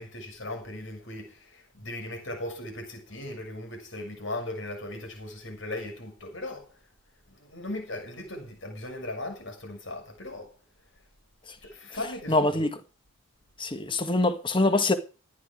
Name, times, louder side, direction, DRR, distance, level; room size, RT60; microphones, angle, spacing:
voice 1, 0.0-6.7 7.4-10.5 11.6-12.6, left 1 dB, 65° left, 6.8 m, -38 dB
voice 2, 12.3-12.7 13.6-14.9, left 2 dB, 25° left, 1.6 m, -24 dB
14.5 x 11.0 x 4.9 m
head